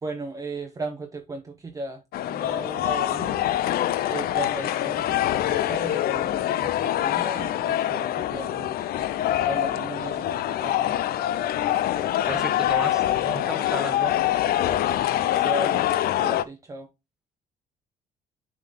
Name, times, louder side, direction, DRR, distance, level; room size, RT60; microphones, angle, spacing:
voice 1, 0.0-3.4 4.1-8.9 9.4-11.0 15.2-15.8 16.2-16.9, right 2 dB, 20° right, 0.7 m, -36 dB
sound 1, 2.1-16.4, left 12 dB, 65° left, 0.5 m, -25 dB
voice 2, 12.3-14.2, right 1 dB, 5° right, 1.2 m, -33 dB
7.1 x 3.8 x 3.7 m
cardioid pair, 110°, 17 cm